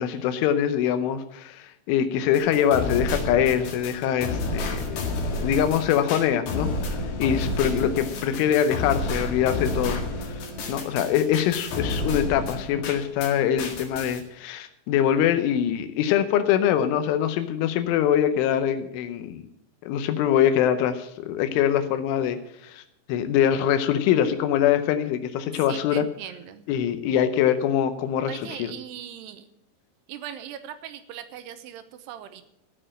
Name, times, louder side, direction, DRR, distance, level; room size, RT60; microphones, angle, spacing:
voice 1, 0.0-10.0 10.7-19.5 19.8-22.8 23.1-26.1 26.7-28.7, left 9 dB, 85° left, 9 dB, 3.3 m, -23 dB
sound 1, 2.3-13.3 13.6-14.2, left 2 dB, 60° left, 3.7 m, -30 dB
voice 2, 25.7-26.6 28.2-29.5 30.1-32.5, right 10 dB, 80° right, 10 dB, 2.6 m, -39 dB
15.0 x 6.6 x 8.7 m, 0.82 s
omnidirectional pair, 5.4 m